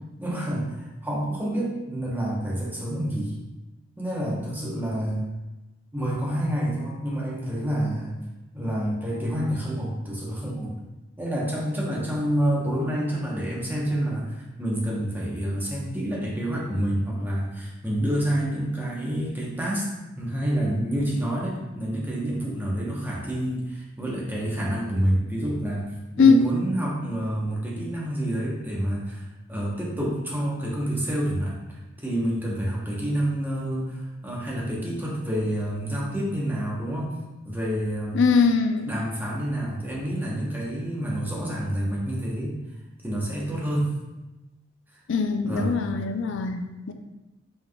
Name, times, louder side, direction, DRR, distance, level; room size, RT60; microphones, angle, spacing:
voice 1, 0.2-3.3 4.0-5.3 5.9-8.2 8.5-10.8 11.2-19.9 20.2-25.9 26.2-29.2 29.5-33.9 34.2-37.1 37.4-38.2 38.8-42.5 43.0-43.9 45.4-45.8, right 1 dB, 10° right, -4 dB, 0.9 m, -28 dB
voice 2, 38.1-38.9 45.1-46.9, left 5 dB, 65° left, 6 dB, 0.4 m, -21 dB
5.5 x 3.4 x 2.3 m, 1.1 s
head